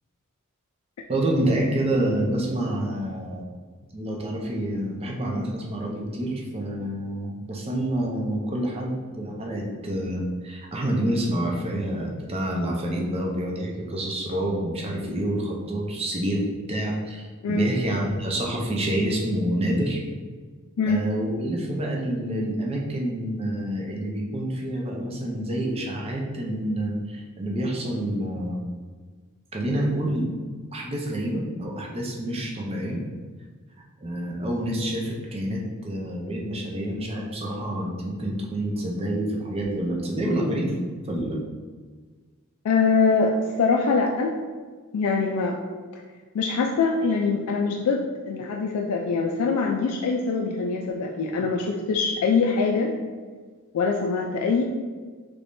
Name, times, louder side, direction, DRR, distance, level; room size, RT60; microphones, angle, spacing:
voice 1, 1.1-3.4 3.9-16.4 16.7-20.0 20.9-28.6 29.5-30.4 30.7-33.0 34.0-40.7 41.0-41.4, right 1 dB, 25° right, -1 dB, 0.5 m, -28 dB
voice 2, 42.6-44.3 44.9-45.6 46.3-52.9 53.7-54.6, left 4 dB, 85° left, 1 dB, 0.3 m, -23 dB
3.4 x 3.2 x 2.5 m, 1.5 s
head